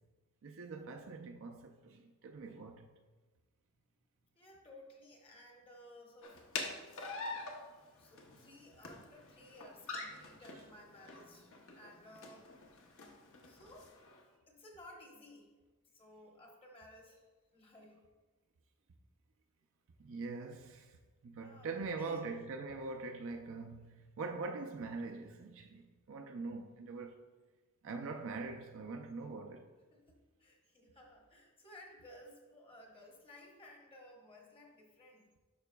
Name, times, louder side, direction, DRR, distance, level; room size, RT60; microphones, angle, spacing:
voice 1, 0.4-2.9 20.0-21.0 21.2-27.1 27.8-29.7, right 3 dB, 60° right, 0.5 m, -43 dB
voice 2, 4.3-7.0 8.0-12.5 13.4-13.9 14.5-15.5 15.9-18.0 21.4-22.2 29.9-35.3, left 1 dB, 25° left, 1.1 m, -57 dB
sound 1, 6.2-14.2, left 3 dB, 65° left, 0.9 m, -46 dB
11.5 x 4.8 x 2.3 m
head